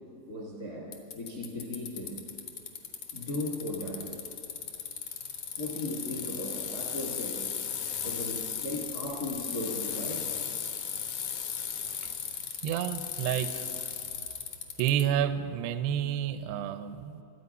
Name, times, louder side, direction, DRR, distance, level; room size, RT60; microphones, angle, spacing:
voice 1, 0.3-2.2 3.1-4.1 5.6-7.4 8.0-10.4, left 1 dB, 60° left, -2 dB, 0.9 m, -37 dB
Bicycle, 0.9-15.0, left 8 dB, 85° left, 1.7 m, -36 dB
voice 2, 12.6-13.7 14.8-17.2, right 10 dB, 85° right, 11 dB, 2.4 m, -29 dB
24.5 x 8.7 x 5.4 m, 2.7 s
omnidirectional pair, 5.5 m